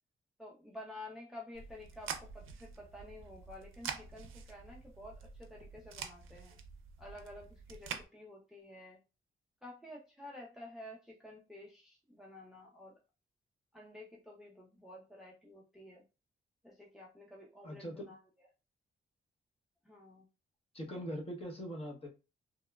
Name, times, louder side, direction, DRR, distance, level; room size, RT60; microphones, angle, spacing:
voice 1, 0.4-6.6 7.0-9.0 9.6-13.0 13.7-16.0 16.6-18.2 19.8-20.3, left 1 dB, ahead, -2 dB, 0.4 m, -51 dB
sound 1, 1.5-8.0, right 7 dB, 85° right, 0.4 m, -46 dB
voice 2, 17.6-18.1 20.7-22.1, equal, 30° left, 0 dB, 0.8 m, -42 dB
2.9 x 2.0 x 2.2 m, 0.30 s
wide cardioid pair, 120°, 20 cm